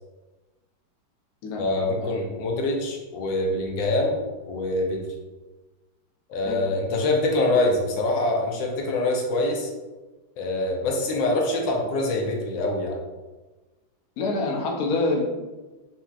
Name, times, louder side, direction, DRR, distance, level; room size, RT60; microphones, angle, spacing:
voice 1, 1.6-5.0 6.3-9.7 10.4-13.0, left 2 dB, 80° left, 0 dB, 1.4 m, -25 dB
voice 2, 14.2-15.2, left 2 dB, 65° left, -1 dB, 1.0 m, -26 dB
5.7 x 2.8 x 2.4 m, 1.2 s
omnidirectional pair, 2.1 m